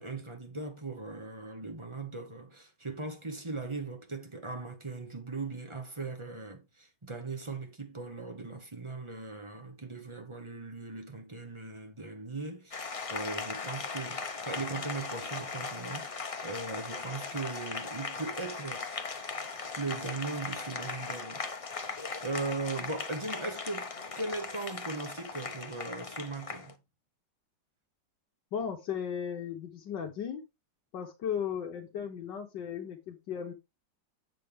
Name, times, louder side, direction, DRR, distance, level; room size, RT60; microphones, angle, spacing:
voice 1, 0.0-18.9 19.8-21.5 21.8-23.9 24.2-26.8, right 3 dB, 20° right, 1.1 m, -39 dB
Applause, 12.7-26.7, left 4 dB, 55° left, 0.3 m, -38 dB
voice 2, 28.5-30.4 30.9-33.5, left 8 dB, 75° left, 1.7 m, -36 dB
7.8 x 6.7 x 3.5 m
omnidirectional pair, 1.9 m